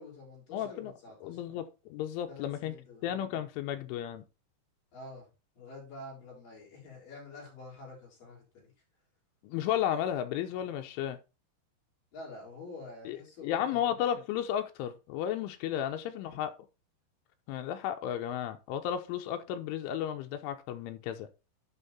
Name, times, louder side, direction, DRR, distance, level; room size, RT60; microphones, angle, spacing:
voice 1, 0.0-1.4 2.3-3.0 4.9-5.3 5.5-8.7 12.1-14.0 16.2-16.4, left 3 dB, 40° left, 6.4 m, -47 dB
voice 2, 0.5-0.9 1.2-2.7 3.0-4.2 9.4-11.2 13.1-13.2 13.4-16.5 17.5-21.3, left 10 dB, 85° left, 3.1 m, -33 dB
10.0 x 5.4 x 4.2 m
omnidirectional pair, 5.9 m